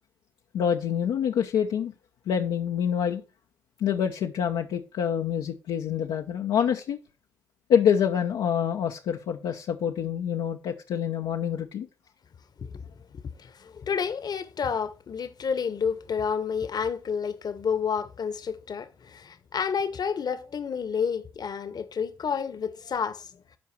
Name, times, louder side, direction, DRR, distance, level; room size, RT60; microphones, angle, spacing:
voice 1, 0.5-1.9 2.3-3.2 3.8-7.0 7.7-11.9, left 8 dB, 70° left, 0.8 m, -26 dB
voice 2, 12.6-12.9 13.4-23.3, left 6 dB, 50° left, 1.2 m, -30 dB
11.5 x 4.7 x 4.3 m
hypercardioid pair, 45°, 9 cm